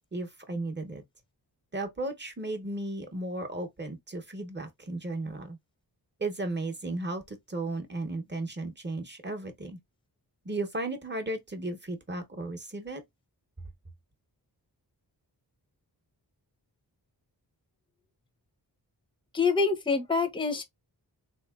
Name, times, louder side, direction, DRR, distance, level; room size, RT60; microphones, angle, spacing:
voice 1, 0.1-1.0 1.7-5.6 6.2-9.8 10.5-13.0, right 2 dB, 25° right, 0.8 m, -35 dB
voice 2, 19.3-20.6, left 4 dB, 10° left, 0.6 m, -26 dB
3.5 x 2.9 x 2.3 m
wide cardioid pair, 100°, 41 cm